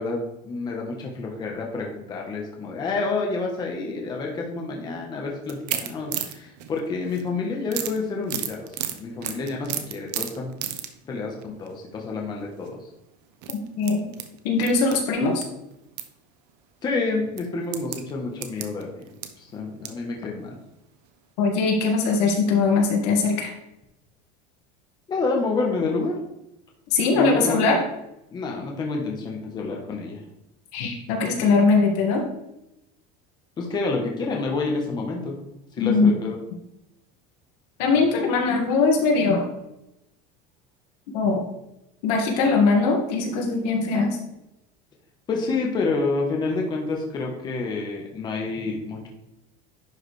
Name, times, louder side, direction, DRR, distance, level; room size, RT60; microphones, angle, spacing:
voice 1, 0.0-10.5 11.0-12.8 16.8-19.1 19.4-20.6 25.1-26.2 27.1-27.8 28.3-30.2 33.6-35.4 35.8-36.4 45.3-49.1, left 3 dB, 20° left, 0 dB, 1.0 m, -28 dB
sound 1, 5.4-7.3 7.7-11.0 11.4-11.7 12.5-12.7 13.3-15.4 15.7-16.1 16.5-16.6 17.4-20.0 20.5-20.6 20.9-21.0, right 11 dB, 85° right, 0.9 m, -33 dB
voice 2, 13.8-14.1 14.4-15.4 21.4-23.5 26.9-27.8 30.7-32.2 35.8-36.1 37.8-39.5 41.1-41.4 42.0-44.2, left 4 dB, 75° left, 1 dB, 1.9 m, -21 dB
10.5 x 4.8 x 3.3 m, 0.87 s
cardioid pair, 170°, 21 cm